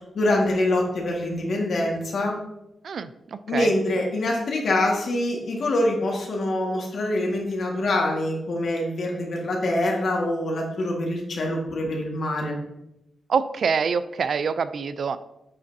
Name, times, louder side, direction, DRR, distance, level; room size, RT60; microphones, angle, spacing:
voice 1, 0.1-2.3 3.5-12.6, left 1 dB, 70° left, -1 dB, 1.7 m, -25 dB
voice 2, 13.3-15.2, right 6 dB, 65° right, 13 dB, 0.4 m, -25 dB
8.4 x 5.2 x 2.7 m, 0.86 s
cardioid pair, 100°, 0 cm